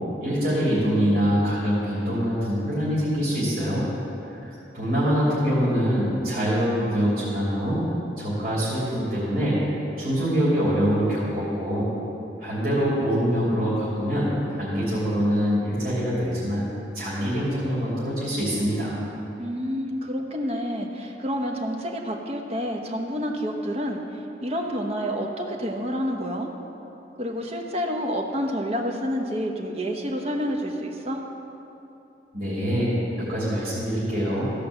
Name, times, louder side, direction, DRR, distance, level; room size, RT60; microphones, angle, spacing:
voice 1, 0.2-3.9 4.3-7.8 8.2-9.6 10.0-11.9 12.4-16.6 16.9-19.0 32.3-34.4, equal, 55° right, -9 dB, 3.0 m, -24 dB
voice 2, 19.4-24.0 24.4-26.5 27.2-31.2, equal, 35° right, 1 dB, 1.0 m, -28 dB
15.0 x 5.1 x 7.0 m, 2.9 s
head